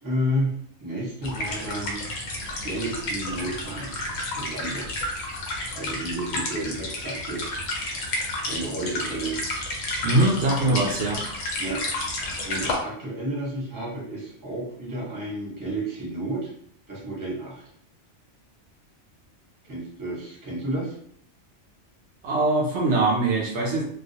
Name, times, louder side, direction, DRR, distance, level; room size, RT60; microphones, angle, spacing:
voice 1, 0.0-2.0 2.4-4.1 4.4-4.9 5.7-7.6 8.4-9.5 11.6-11.8 12.1-12.2 12.4-16.5 16.9-17.6 19.6-20.9, right 1 dB, 20° right, -5 dB, 0.8 m, -31 dB
sound 1, 1.2-12.7, left 1 dB, 65° left, 0.9 m, -31 dB
voice 2, 10.0-11.2 22.2-23.8, right 2 dB, 70° right, -2 dB, 0.8 m, -22 dB
2.3 x 2.3 x 2.6 m, 0.63 s
omnidirectional pair, 1.2 m